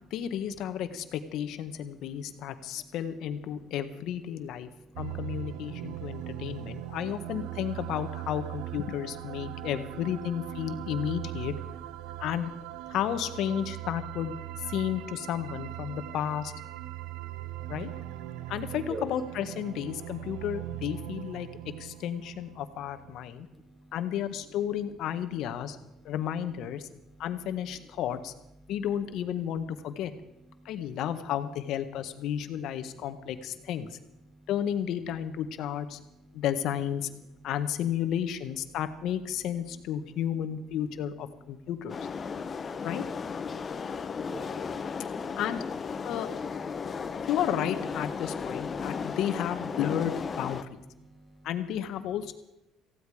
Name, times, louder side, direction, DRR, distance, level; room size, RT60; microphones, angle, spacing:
voice 1, 0.1-4.7 5.0-11.5 12.2-12.5 12.9-14.3 14.6-16.5 17.7-17.9 18.5-21.5 21.8-23.5 23.9-25.8 26.0-26.9 27.2-28.3 28.7-30.1 30.6-33.9 34.5-36.0 36.3-37.1 37.4-42.0 42.8-43.0 45.4-45.6 46.0-46.3 47.2-50.6 51.4-52.3, left 10 dB, 70° left, 10 dB, 1.4 m, -32 dB
voice 2, 1.7-2.9 3.5-3.8 4.6-5.2 5.7-7.0 9.5-9.7 12.0-12.2 16.9-18.5 18.9-19.1 21.4-21.7 23.1-24.0 25.7-26.1 26.8-27.2 28.6-28.7 30.5-30.9 34.3-34.5 36.1-36.4 37.3-37.5 41.5-41.7 42.2-42.9 43.5-45.4 46.0-46.1 46.7-47.3 48.7-49.1 50.9-51.5, right 1 dB, 5° right, 3 dB, 2.1 m, -51 dB
sound 1, 4.9-23.2, right 15 dB, 80° right, 0.7 m, -40 dB
sound 2, 41.9-50.6, left 5 dB, 35° left, 1.0 m, -35 dB
18.5 x 15.5 x 5.0 m, 0.92 s
supercardioid pair, 90°, 0 cm